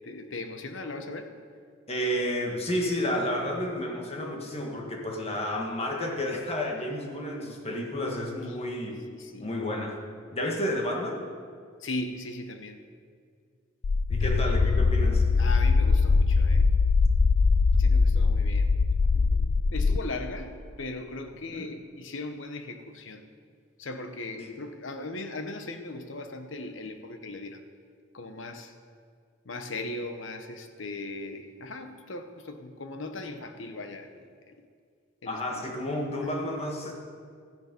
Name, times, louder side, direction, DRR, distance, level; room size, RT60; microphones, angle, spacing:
voice 1, 0.0-1.3 8.5-9.6 11.8-12.8 14.2-14.7 15.4-16.7 17.8-18.7 19.1-23.3 23.8-27.6 28.1-28.7 29.4-34.6 35.2-35.8, left 2 dB, 75° left, 7 dB, 1.0 m, -39 dB
voice 2, 1.9-9.0 9.4-10.0 10.3-11.2 14.1-15.2 21.5-21.7 24.4-24.5 35.3-36.9, left 1 dB, 30° left, 1 dB, 1.7 m, -31 dB
sound 1, 13.8-20.0, left 4 dB, 55° left, 0.4 m, -22 dB
14.0 x 10.5 x 5.3 m, 2.1 s
head